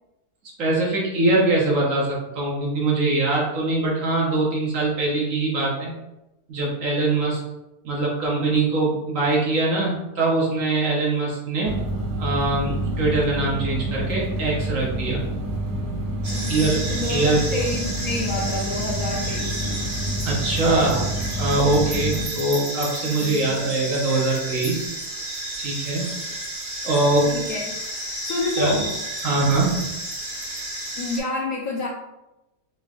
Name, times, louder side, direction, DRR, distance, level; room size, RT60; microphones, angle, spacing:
voice 1, 0.6-5.9 6.5-7.4 7.8-11.7 12.2-15.2 16.5-16.8 17.1-17.4 20.2-21.1 21.4-24.9 25.6-26.5 26.8-27.3 28.6-28.8 29.2-29.8, right 2 dB, 55° right, -4 dB, 1.3 m, -22 dB
sound 1, 11.6-22.2, right 1 dB, 75° right, 1.3 m, -28 dB
sound 2, 16.2-31.2, right 1 dB, 40° right, 0.5 m, -32 dB
voice 2, 16.3-19.9 23.2-23.7 27.3-27.9 28.2-29.0 31.0-31.9, left 3 dB, 70° left, -1 dB, 0.8 m, -29 dB
3.9 x 3.7 x 2.4 m, 0.94 s
omnidirectional pair, 1.8 m